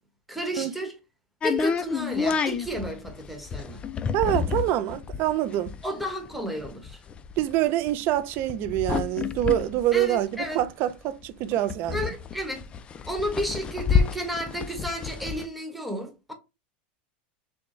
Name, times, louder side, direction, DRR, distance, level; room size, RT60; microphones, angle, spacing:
voice 1, 0.3-1.0 1.4-3.8 5.8-7.0 9.9-10.6 11.9-12.7 13.1-16.3, equal, ahead, 1.2 m, -32 dB
sound 1, 1.4-10.9 11.2-11.3 11.5-15.5, left 6 dB, 20° left, 0.4 m, -29 dB
voice 2, 4.1-5.7 7.4-12.1, right 13 dB, 45° right, 0.5 m, -25 dB
6.1 x 2.3 x 3.1 m
supercardioid pair, 145°, 5 cm